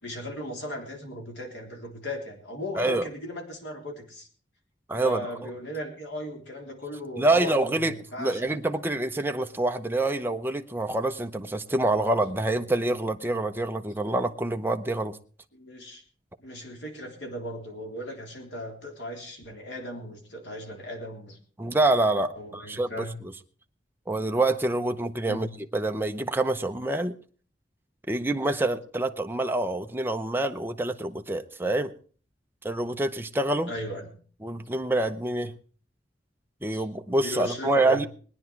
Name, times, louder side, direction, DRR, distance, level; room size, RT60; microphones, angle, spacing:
voice 1, 0.0-4.3 5.0-8.6 15.5-16.0 16.4-21.4 22.4-23.1 25.3-25.5 33.7-34.2 36.7-36.8 37.2-38.0, left 1 dB, 80° left, 3.6 m, -37 dB
voice 2, 4.9-5.5 7.2-15.2 21.6-23.1 24.1-25.5 25.7-27.2 28.1-31.9 32.6-33.7 34.4-35.5 36.6-38.1, right 2 dB, 10° right, 0.8 m, -26 dB
20.5 x 9.9 x 4.6 m
head